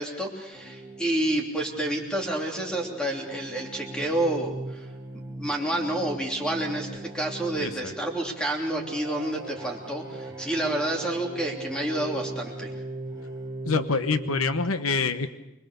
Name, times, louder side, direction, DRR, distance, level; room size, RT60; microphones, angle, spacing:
voice 1, 0.0-4.9 5.4-12.7, right 1 dB, 5° left, 1 dB, 3.1 m, -29 dB
sound 1, 0.5-14.7, right 2 dB, 15° right, 3.6 m, -39 dB
voice 2, 7.6-7.9 13.7-15.3, left 4 dB, 85° left, 11 dB, 1.1 m, -26 dB
25.0 x 22.0 x 6.9 m, 0.98 s
head